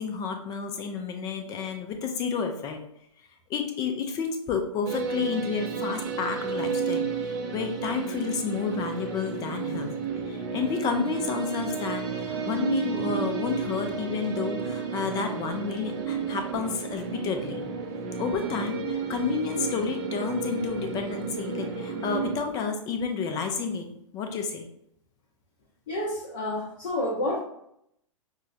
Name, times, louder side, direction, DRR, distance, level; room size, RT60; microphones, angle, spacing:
voice 1, 0.0-2.8 3.5-9.9 10.3-17.7 18.2-23.9 24.1-24.7, left 6 dB, 20° left, 5 dB, 0.4 m, -30 dB
sound 1, 4.9-22.4, right 5 dB, 35° right, 0.5 m, -32 dB
voice 2, 25.9-27.4, left 1 dB, 45° left, -4 dB, 0.8 m, -29 dB
5.3 x 2.1 x 2.5 m, 0.75 s
figure-of-eight pair, 105°, 17 cm